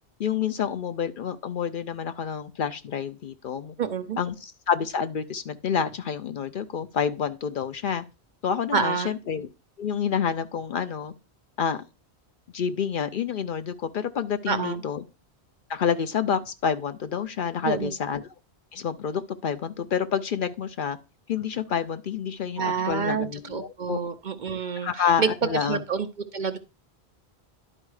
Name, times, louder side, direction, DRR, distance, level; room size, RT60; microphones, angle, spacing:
voice 1, 0.2-3.7 4.2-8.0 8.4-9.5 9.8-11.1 11.6-11.8 12.5-15.0 15.7-18.3 18.7-21.0 21.3-24.0 24.8-25.8, left 7 dB, 60° left, 0.7 m, -28 dB
voice 2, 3.8-4.2 8.7-9.1 14.5-14.8 17.6-17.9 22.6-25.3 25.6-26.1 26.3-26.6, right 6 dB, 55° right, 0.6 m, -28 dB
11.0 x 4.3 x 4.8 m
omnidirectional pair, 1.1 m